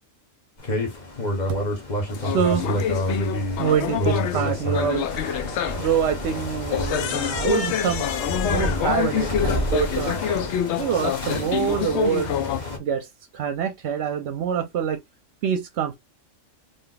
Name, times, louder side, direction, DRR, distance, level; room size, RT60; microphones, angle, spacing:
sound 1, 0.6-12.8, left 1 dB, 35° left, 1.2 m, -29 dB
sound 2, 2.1-12.6, left 9 dB, 70° left, 0.8 m, -27 dB
voice 1, 2.2-3.0 3.6-5.4 5.8-10.2 10.8-12.3 12.8-15.0 15.4-16.0, right 8 dB, 65° right, 0.8 m, -26 dB
3.3 x 2.6 x 3.8 m
omnidirectional pair, 1.3 m